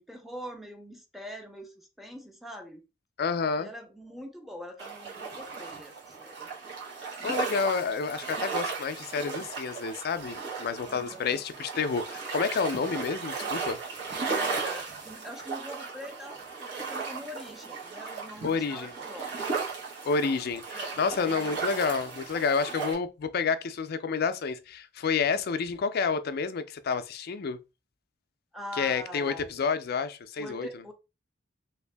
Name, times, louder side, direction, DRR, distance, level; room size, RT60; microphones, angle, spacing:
voice 1, 0.0-2.8 3.6-6.5 7.2-7.4 10.9-11.4 14.2-19.4 20.7-21.7 22.8-23.0 28.5-29.6 30.4-30.9, equal, ahead, 0.6 m, -43 dB
voice 2, 3.2-3.7 7.2-13.8 18.4-18.9 20.0-27.6 28.7-30.8, left 5 dB, 55° left, 0.4 m, -29 dB
sound 1, 4.8-22.9, right 5 dB, 65° right, 1.3 m, -36 dB
2.9 x 2.6 x 3.3 m
head